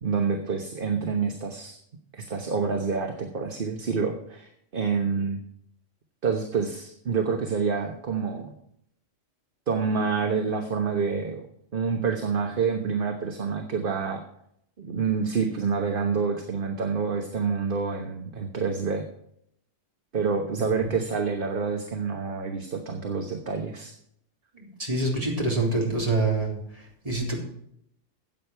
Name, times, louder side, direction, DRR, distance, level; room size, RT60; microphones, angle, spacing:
voice 1, 0.0-1.8 2.1-5.4 6.2-8.5 9.7-11.4 11.7-14.2 14.8-19.0 20.1-23.9, right 5 dB, 45° right, 4 dB, 1.3 m, -27 dB
voice 2, 24.5-27.4, right 2 dB, 30° right, -2 dB, 3.4 m, -26 dB
14.5 x 8.5 x 4.5 m, 0.71 s
omnidirectional pair, 1.3 m